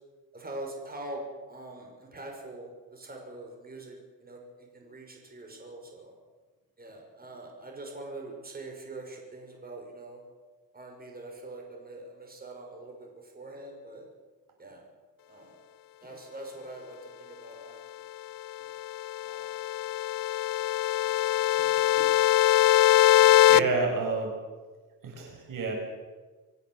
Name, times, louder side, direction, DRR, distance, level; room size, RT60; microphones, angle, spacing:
voice 1, 0.3-1.2 1.5-6.1 6.8-10.2 10.7-14.1 14.6-14.8 15.3-15.6 16.0-18.0 18.6-18.7 19.2-19.7 21.6-21.7 22.0-22.1, right 2 dB, 25° right, 1 dB, 5.9 m, -44 dB
sound 1, 18.7-23.6, left 14 dB, 70° left, 0.7 m, -22 dB
voice 2, 23.5-24.4 25.0-25.7, right 4 dB, 65° right, 2 dB, 7.2 m, -29 dB
26.5 x 16.0 x 7.9 m, 1.3 s
cardioid pair, 115°, 35 cm